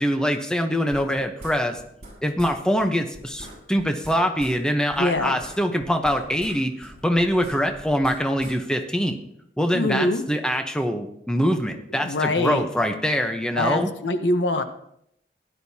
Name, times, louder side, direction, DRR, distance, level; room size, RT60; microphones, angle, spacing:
voice 1, 0.0-1.8 2.2-9.2 9.6-13.9, equal, 5° left, 5 dB, 0.8 m, -24 dB
sound 1, 0.9-2.1 2.4-2.5 2.8-2.9 3.1-4.6 4.9-6.6 6.8-8.5, right 1 dB, 40° right, 5.2 m, -42 dB
voice 2, 5.0-5.4 9.7-10.2 11.9-12.6 13.6-14.6, left 2 dB, 85° left, 8 dB, 1.0 m, -24 dB
16.0 x 11.0 x 2.8 m, 0.75 s
head